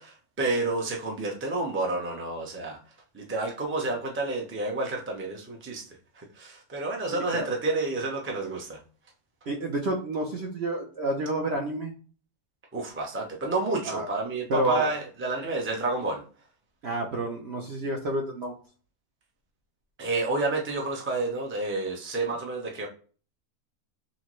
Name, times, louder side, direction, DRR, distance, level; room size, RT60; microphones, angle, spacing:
voice 1, 0.0-2.8 3.1-5.8 6.2-8.8 12.7-16.2 20.0-22.9, right 3 dB, 15° right, -1 dB, 0.5 m, -29 dB
voice 2, 7.1-7.5 9.5-11.9 13.8-14.1 14.5-14.9 16.8-18.5, right 1 dB, 55° right, 1 dB, 0.8 m, -30 dB
6.4 x 2.2 x 3.0 m, 0.39 s
omnidirectional pair, 1.6 m